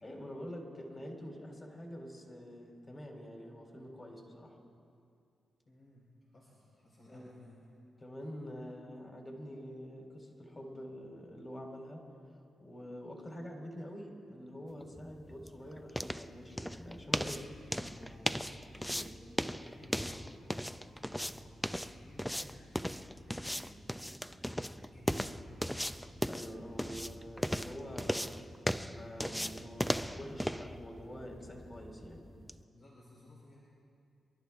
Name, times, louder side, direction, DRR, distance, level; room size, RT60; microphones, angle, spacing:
voice 1, 0.0-4.6 7.1-7.3 8.0-12.1 12.6-17.4 18.7-19.2 24.2-24.3 26.3-28.6 28.8-32.3, equal, 30° left, 1 dB, 3.7 m, -46 dB
voice 2, 5.6-7.6 17.2-18.6 19.5-24.1 24.8-25.5 32.7-33.6, left 1 dB, 65° left, -7 dB, 4.3 m, -57 dB
sound 1, 14.8-32.6, equal, 5° left, 0.6 m, -38 dB
27.0 x 11.5 x 3.6 m, 2.4 s
supercardioid pair, 50°, 0 cm